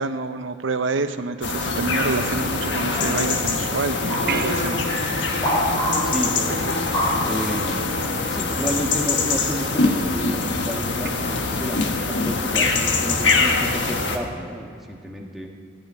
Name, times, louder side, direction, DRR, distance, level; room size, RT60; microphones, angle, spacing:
voice 1, 0.0-4.9, right 3 dB, 85° right, 9 dB, 0.7 m, -27 dB
sound 1, 1.4-14.2, left 3 dB, 70° left, 1.5 m, -23 dB
sound 2, 4.1-4.5 4.9-6.3 6.9-7.6, equal, 15° left, 3.0 m, -26 dB
sound 3, 4.3-7.0 11.0-11.1, right 5 dB, 50° right, 1.2 m, -34 dB
voice 2, 6.0-6.7 7.2-7.8 8.3-15.5, equal, ahead, -1 dB, 1.5 m, -31 dB
16.0 x 8.9 x 9.6 m, 2.2 s
head